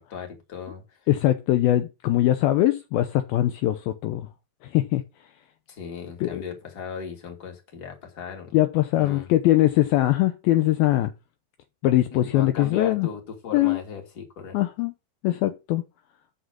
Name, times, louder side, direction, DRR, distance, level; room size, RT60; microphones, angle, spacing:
voice 1, 0.0-1.0 5.7-8.6 9.0-9.3 12.1-14.6, left 6 dB, 30° left, 2.3 m, -37 dB
voice 2, 1.1-4.3 4.6-5.0 6.2-6.4 8.5-11.1 11.8-13.1 13.5-13.8 14.5-14.9 15.2-15.8, left 15 dB, 80° left, 2.3 m, -22 dB
7.9 x 5.9 x 6.4 m
omnidirectional pair, 4.8 m